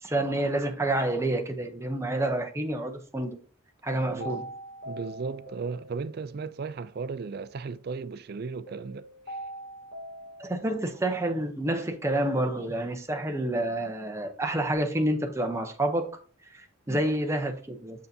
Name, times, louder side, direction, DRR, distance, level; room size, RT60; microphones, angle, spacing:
voice 1, 0.0-3.4 3.8-4.5 10.4-16.1 16.5-18.1, right 1 dB, 15° right, 0.7 m, -28 dB
sound 1, 4.2-6.5 8.7-11.0 14.5-14.7, right 1 dB, 35° left, 2.4 m, -42 dB
voice 2, 4.9-9.4 16.9-17.0, right 4 dB, 45° right, 0.3 m, -36 dB
6.6 x 6.6 x 2.7 m
head